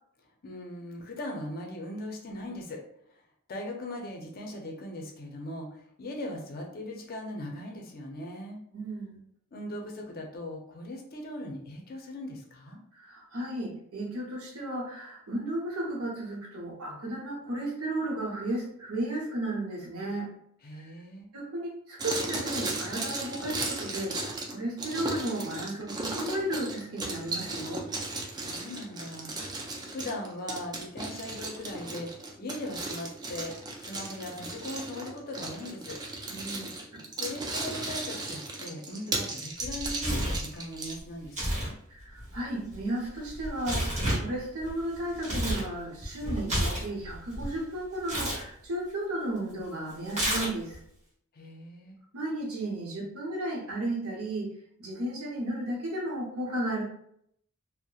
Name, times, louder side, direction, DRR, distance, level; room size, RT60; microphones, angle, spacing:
voice 1, 0.4-2.8 3.5-8.6 9.5-12.8 20.6-21.3 28.4-36.0 37.2-41.8 51.3-52.0, left 1 dB, 45° left, 1 dB, 0.5 m, -39 dB
voice 2, 8.7-9.2 12.9-20.3 20.7-20.8 21.3-27.8 36.3-37.0 41.9-50.8 52.1-54.5 54.8-56.8, right 1 dB, 75° right, -2 dB, 0.9 m, -34 dB
sound 1, 22.0-41.0, right 2 dB, 20° right, 0.3 m, -36 dB
Tearing, 39.6-40.5 41.2-41.7 42.0-45.7 46.0-47.5 48.0-48.4 50.1-50.7, equal, 35° right, 0.9 m, -31 dB
2.7 x 2.0 x 2.3 m, 0.68 s
head